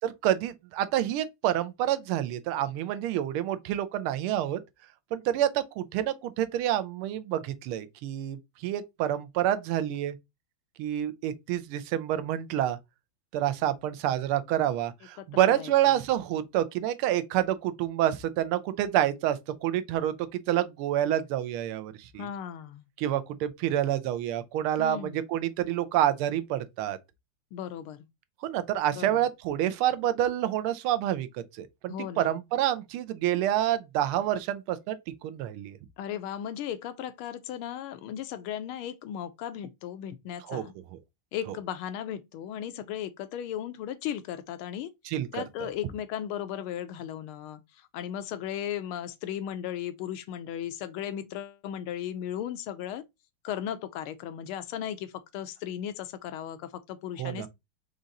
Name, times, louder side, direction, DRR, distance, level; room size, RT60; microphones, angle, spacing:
voice 1, 0.0-4.6 5.1-10.1 10.8-12.8 13.3-22.3 23.0-27.0 28.4-35.0 35.2-35.8 40.5-40.6 45.1-45.4 57.2-57.5, right 12 dB, 80° right, 1.5 m, -28 dB
voice 2, 15.2-15.7 22.2-22.9 24.8-25.2 27.5-28.0 28.9-29.2 31.9-32.4 36.0-40.7 41.3-44.9 45.3-53.0 53.4-57.5, left 10 dB, 80° left, 1.5 m, -36 dB
5.1 x 2.5 x 4.0 m
omnidirectional pair, 2.4 m